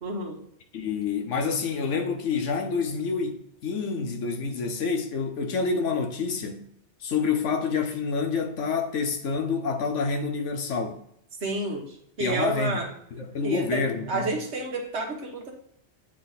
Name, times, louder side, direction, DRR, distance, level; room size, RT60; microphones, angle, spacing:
voice 1, 0.0-0.4 11.4-12.9 13.4-15.5, right 3 dB, 70° right, 1.5 m, -30 dB
voice 2, 0.7-6.6 7.0-11.0 12.2-12.8 13.2-14.4, left 5 dB, 85° left, 1.2 m, -28 dB
8.7 x 3.2 x 4.1 m
omnidirectional pair, 1.2 m